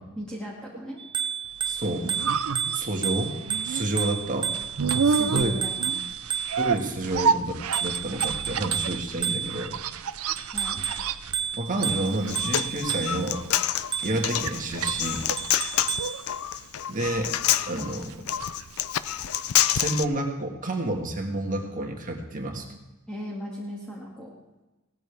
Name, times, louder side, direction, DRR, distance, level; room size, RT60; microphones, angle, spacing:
voice 1, 0.2-1.0 5.0-5.9 10.5-10.9 23.1-24.3, equal, 5° left, -5 dB, 2.2 m, -37 dB
Bicycle bell, 1.0-6.8 7.7-9.8 10.4-13.3 13.9-14.3 14.9-16.2, right 8 dB, 20° right, 0.5 m, -31 dB
voice 2, 1.7-2.1 2.7-3.4 3.6-4.5 5.3-5.6 6.6-9.7 11.6-13.4 14.0-15.3 16.9-17.3 17.7-18.2 19.7-22.7, right 1 dB, 40° right, 2 dB, 1.7 m, -29 dB
sound 1, 1.7-19.7 20.0-20.1, right 5 dB, 90° right, 0.6 m, -31 dB
Human voice, 12.1-20.0, left 11 dB, 80° left, 0.5 m, -27 dB
17.0 x 13.5 x 3.5 m, 1.1 s
head